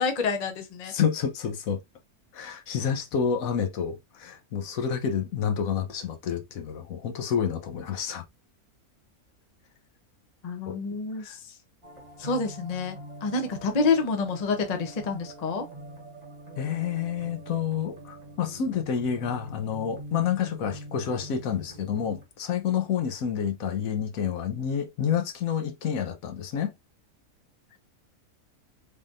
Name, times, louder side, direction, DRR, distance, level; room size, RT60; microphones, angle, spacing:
voice 1, 0.0-0.9 10.4-11.5 12.2-15.7, left 4 dB, 40° left, 0.6 m, -28 dB
voice 2, 0.9-1.8 2.3-8.2 10.7-10.8 11.2-11.4 16.6-26.7, left 7 dB, 70° left, 1.1 m, -29 dB
sound 1, 11.8-22.2, right 1 dB, 25° right, 1.0 m, -44 dB
3.6 x 3.3 x 2.5 m
omnidirectional pair, 1.6 m